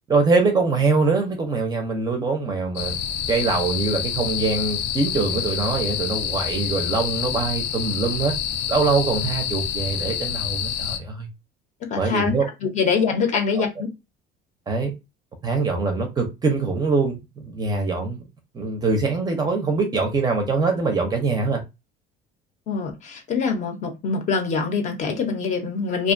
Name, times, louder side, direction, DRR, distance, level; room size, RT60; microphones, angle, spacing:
voice 1, 0.1-3.0 3.3-8.3 8.7-11.3 12.0-12.5 13.6-13.7 14.7-14.9 15.4-18.3 18.5-21.6, right 4 dB, 20° right, 0.5 m, -23 dB
sound 1, 2.8-11.0, left 9 dB, 80° left, 0.5 m, -27 dB
voice 2, 11.9-12.3 12.6-13.9 22.7-26.1, left 5 dB, 40° left, 0.6 m, -24 dB
2.5 x 2.2 x 2.5 m
cardioid pair, 150°, 19 cm